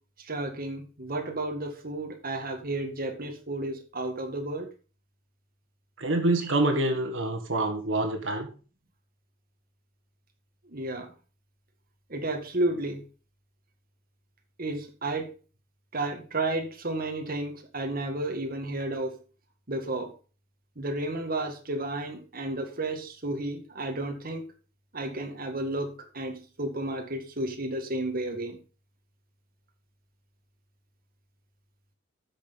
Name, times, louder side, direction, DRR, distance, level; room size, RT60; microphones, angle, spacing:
voice 1, 0.3-4.7 6.4-6.5 10.7-11.1 12.1-13.0 14.6-15.3 15.9-19.2 19.7-20.1 20.8-24.4 24.9-28.6, right 2 dB, 45° right, 2 dB, 1.9 m, -32 dB
voice 2, 6.0-8.5, right 2 dB, 70° right, 5 dB, 1.9 m, -26 dB
10.0 x 6.5 x 5.3 m, 0.36 s
head